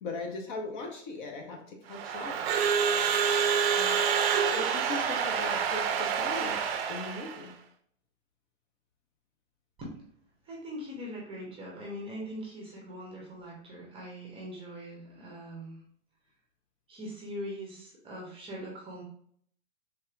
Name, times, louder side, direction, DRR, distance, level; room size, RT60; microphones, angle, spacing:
voice 1, 0.0-2.4 3.8-4.0 4.5-7.5, left 3 dB, 40° left, 2 dB, 0.7 m, -39 dB
Crowd / Alarm, 1.9-7.4, right 7 dB, 55° right, 0.5 m, -27 dB
voice 2, 10.4-15.8 16.9-19.0, equal, 15° right, -3 dB, 0.7 m, -41 dB
3.4 x 2.8 x 2.4 m, 0.63 s
hypercardioid pair, 140°, 37 cm